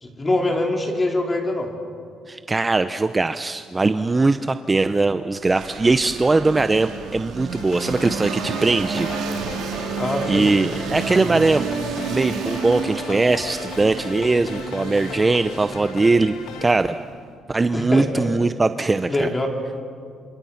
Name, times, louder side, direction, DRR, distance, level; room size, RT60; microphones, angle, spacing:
voice 1, 0.0-1.7 10.0-10.5 17.7-18.3 19.1-19.5, left 1 dB, 20° left, 2 dB, 3.8 m, -23 dB
voice 2, 2.3-9.7 10.3-11.7 12.1-16.3 16.6-17.0 17.5-19.3, right 3 dB, 20° right, 10 dB, 0.6 m, -20 dB
sound 1, 5.4-17.2, right 6 dB, 85° right, 2.9 m, -31 dB
sound 2, 7.5-16.7, left 8 dB, 90° left, 1.5 m, -36 dB
28.5 x 26.5 x 5.8 m, 2.2 s
cardioid pair, 120°, 0 cm